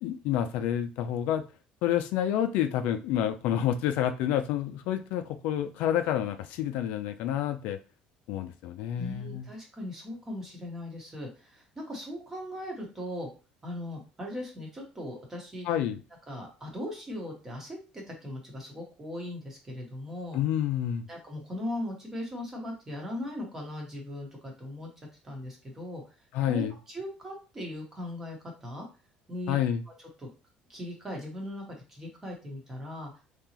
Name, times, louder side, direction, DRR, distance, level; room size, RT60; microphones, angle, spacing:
voice 1, 0.0-1.4 1.8-7.8 8.3-9.5 15.7-16.0 20.3-21.1 26.3-26.7 29.5-29.8, left 10 dB, 70° left, 8 dB, 0.4 m, -28 dB
voice 2, 9.0-13.3 13.6-15.7 16.3-20.4 21.1-24.9 25.2-26.0 26.5-28.9 29.3-29.6 30.2-30.3 30.7-33.1, left 1 dB, 15° right, 0 dB, 1.1 m, -39 dB
3.8 x 2.9 x 2.8 m, 0.32 s
cardioid pair, 170°, 3 cm